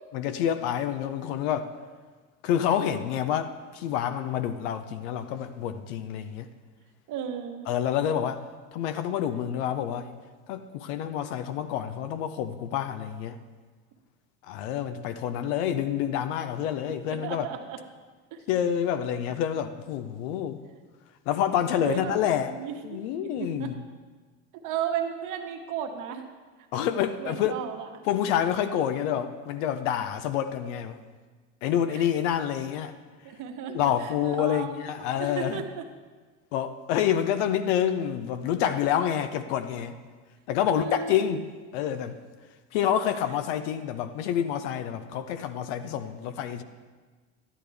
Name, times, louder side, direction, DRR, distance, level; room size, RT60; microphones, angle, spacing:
voice 1, 0.1-1.7 2.4-6.5 7.7-8.4 8.7-10.1 10.5-13.4 14.5-17.5 18.5-20.6 21.3-22.5 22.8-23.7 26.7-27.6 28.1-31.0 31.6-32.9 33.7-35.6 36.5-40.0 40.5-41.5 41.7-42.2 42.7-46.6, left 9 dB, 70° left, 9 dB, 0.8 m, -28 dB
voice 2, 7.1-7.7 17.1-17.8 18.3-18.4 21.7-23.7 24.5-26.2 27.2-27.9 31.9-32.1 33.2-34.7 35.2-35.8 40.7-41.4, right 7 dB, 55° right, 4 dB, 1.3 m, -34 dB
12.0 x 9.9 x 3.4 m, 1.4 s
hypercardioid pair, 85°, 38 cm